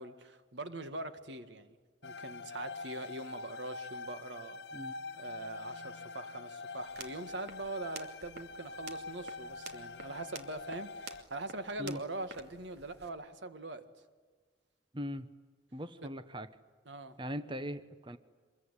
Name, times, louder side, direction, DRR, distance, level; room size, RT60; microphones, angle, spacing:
voice 1, 0.0-1.8 2.0-4.6 5.1-13.8 16.0-16.1 16.9-17.2, right 2 dB, 90° right, 10 dB, 1.9 m, -42 dB
sound 1, 2.0-11.2, left 3 dB, 70° left, 0.9 m, -45 dB
sound 2, 6.8-13.1, right 4 dB, 65° right, 2.6 m, -51 dB
voice 2, 14.9-15.3 15.7-16.5 17.2-18.2, equal, 25° right, 11 dB, 1.0 m, -40 dB
26.5 x 22.0 x 10.0 m, 1.5 s
head